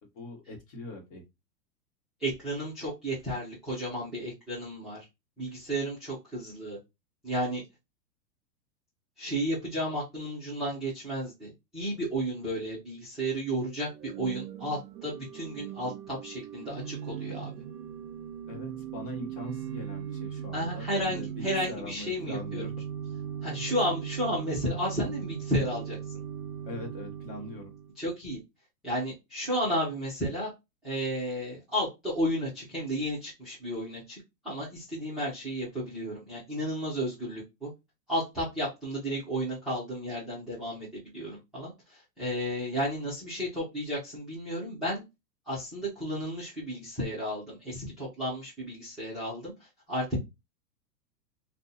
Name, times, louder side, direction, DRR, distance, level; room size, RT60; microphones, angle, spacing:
voice 1, 0.1-1.2 18.5-22.7 23.5-23.6 26.6-27.7, left 1 dB, 30° left, 1 dB, 1.1 m, -42 dB
voice 2, 2.2-5.1 5.4-6.8 7.2-7.6 9.2-17.5 20.5-22.7 23.4-26.0 28.0-28.4 28.8-30.5 30.8-37.7 38.1-45.0 45.5-49.5 49.9-50.2, equal, ahead, -11 dB, 0.6 m, -33 dB
Organ / Church bell, 13.8-28.0, right 9 dB, 70° right, 0.7 m, -39 dB
2.6 x 2.3 x 3.9 m, 0.22 s
hypercardioid pair, 155°, 50 cm